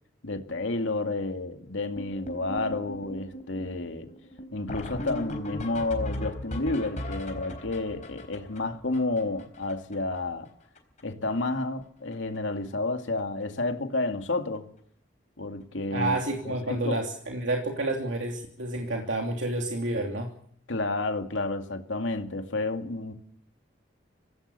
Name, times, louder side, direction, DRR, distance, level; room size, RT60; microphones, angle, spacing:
voice 1, 0.2-4.1 4.5-10.5 11.0-14.7 15.4-16.2 16.5-17.0 20.7-23.1, left 2 dB, 85° left, 2.3 m, -30 dB
sound 1, 2.0-10.2 10.5-10.6 10.8-11.0 11.3-11.8 12.1-12.4 13.2-13.3 13.7-13.8 14.1-14.2 16.5-16.6 18.9-19.0, left 1 dB, 40° left, 4.0 m, -38 dB
voice 2, 15.9-20.3, right 2 dB, 90° right, 3.0 m, -29 dB
25.0 x 17.5 x 6.9 m
head